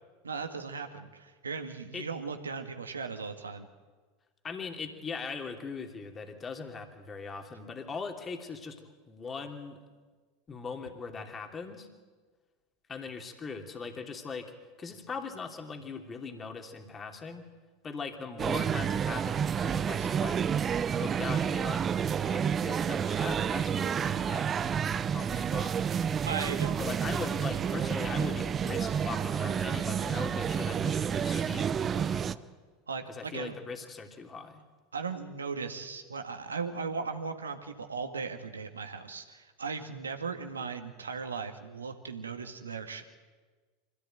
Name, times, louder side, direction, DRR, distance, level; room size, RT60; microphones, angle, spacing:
voice 1, 0.2-3.7 26.3-26.8 32.9-33.5 34.9-43.0, right 5 dB, 85° right, 6 dB, 1.9 m, -37 dB
voice 2, 4.4-9.8 10.5-11.9 12.9-14.5 14.8-17.4 17.8-20.4 20.9-21.8 22.3-24.5 25.1-25.8 26.8-32.5 33.1-34.6, left 5 dB, 25° left, 4 dB, 2.9 m, -40 dB
sound 1, 18.4-32.3, right 7 dB, 30° right, 0.8 m, -30 dB
25.0 x 16.0 x 9.2 m, 1.4 s
figure-of-eight pair, 80°, 0 cm